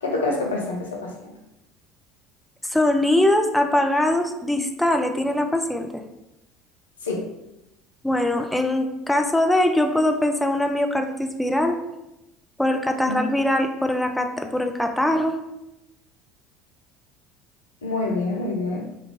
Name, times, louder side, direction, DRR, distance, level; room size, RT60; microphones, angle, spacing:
voice 1, 0.0-1.3 7.0-7.3 13.1-13.2 17.8-18.9, left 2 dB, 80° left, 1 dB, 0.4 m, -26 dB
voice 2, 2.7-6.0 8.0-11.8 12.6-15.4, left 1 dB, 5° left, 5 dB, 0.3 m, -22 dB
2.4 x 2.3 x 3.0 m, 0.92 s
figure-of-eight pair, 65°, 0 cm